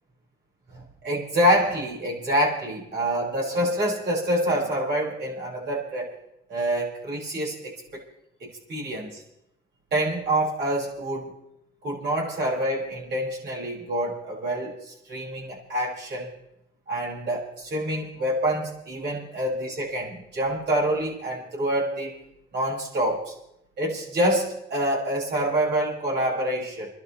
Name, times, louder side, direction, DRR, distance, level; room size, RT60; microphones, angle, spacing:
voice 1, 0.7-6.2 6.5-8.0 8.4-9.2 9.9-11.3 11.8-16.4 16.9-22.1 22.5-23.3 23.8-26.9, right 1 dB, 60° right, -4 dB, 6.8 m, -26 dB
30.0 x 11.5 x 3.4 m, 0.81 s
cardioid pair, 90°, 20 cm